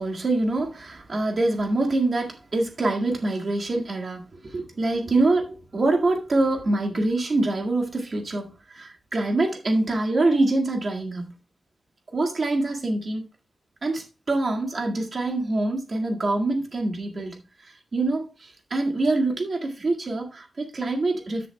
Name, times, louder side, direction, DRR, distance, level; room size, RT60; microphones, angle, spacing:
voice 1, 0.0-11.3 12.1-13.3 13.8-21.5, right 2 dB, 45° right, 1.9 m, -25 dB
13.5 x 7.4 x 2.3 m
wide cardioid pair, 150°, 0 cm